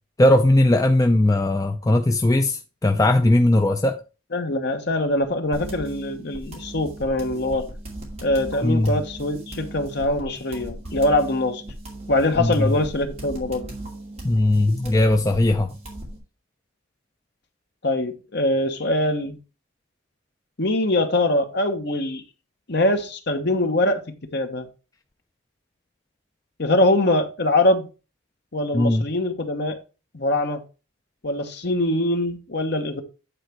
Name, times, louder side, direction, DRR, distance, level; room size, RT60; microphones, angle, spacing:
voice 1, 0.2-4.0 8.6-9.0 12.4-12.8 14.2-15.7 28.7-29.1, left 1 dB, 15° left, 0.4 m, -19 dB
voice 2, 4.3-7.7 8.2-11.6 12.1-13.7 17.8-19.4 20.6-22.2 22.7-24.7 26.6-27.9 28.5-29.8 30.1-30.6 31.2-33.0, left 1 dB, 50° left, 1.1 m, -23 dB
sound 1, 5.5-16.2, right 1 dB, 30° right, 2.5 m, -37 dB
9.0 x 4.2 x 4.5 m
head